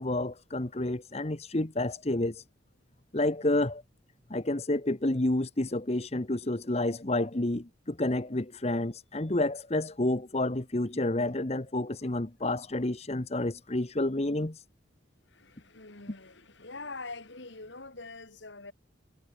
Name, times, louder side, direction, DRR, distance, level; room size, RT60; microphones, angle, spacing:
voice 1, 0.0-2.4 3.1-3.8 4.3-14.6, left 1 dB, 35° left, 1.1 m, -29 dB
voice 2, 15.3-18.7, left 3 dB, 65° left, 2.6 m, -44 dB
head